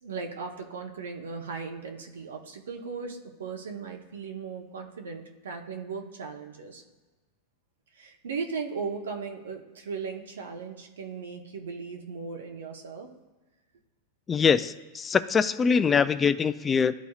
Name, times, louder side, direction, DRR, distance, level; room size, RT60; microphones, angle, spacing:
voice 1, 0.0-6.8 7.9-13.1, right 5 dB, 85° right, 3 dB, 0.9 m, -37 dB
voice 2, 14.3-17.0, left 6 dB, 20° left, 14 dB, 0.3 m, -23 dB
12.5 x 4.1 x 2.4 m, 1.2 s
hypercardioid pair, 110°, 0 cm